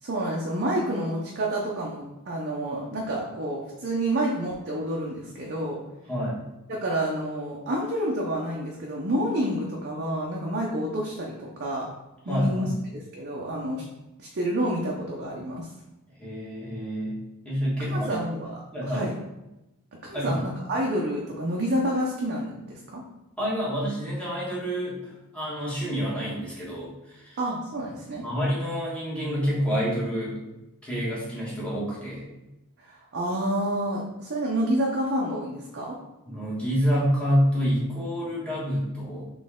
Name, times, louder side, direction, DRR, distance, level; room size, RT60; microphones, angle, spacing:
voice 1, 0.0-5.8 6.7-11.9 12.3-12.7 12.9-13.8 14.2-15.7 17.8-18.5 18.8-19.1 20.0-23.0 27.4-28.2 32.8-36.0, right 1 dB, 50° right, -2 dB, 0.6 m, -29 dB
voice 2, 6.1-6.4 12.3-12.8 16.2-17.1 17.4-18.2 18.7-19.1 20.1-20.3 23.4-27.4 28.2-30.4 30.8-32.3 36.2-39.3, equal, 5° left, -8 dB, 1.4 m, -28 dB
4.2 x 3.2 x 3.6 m, 0.97 s
head